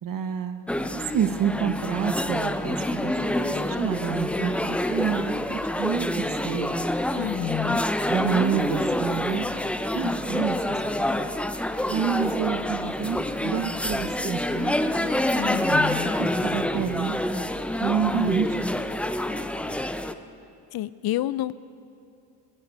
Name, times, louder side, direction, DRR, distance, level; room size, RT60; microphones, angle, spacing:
voice 1, 0.0-6.8 8.0-9.5 9.9-11.3 11.9-14.7 16.2-17.2 17.8-18.9, right 8 dB, 50° right, 9 dB, 1.0 m, -29 dB
sound 1, 0.7-20.1, left 1 dB, 5° left, 0.4 m, -27 dB
voice 2, 7.1-7.8 15.4-16.1 20.7-21.5, left 14 dB, 60° left, 17 dB, 0.5 m, -29 dB
17.5 x 15.5 x 4.7 m, 2.7 s
cardioid pair, 120°, 43 cm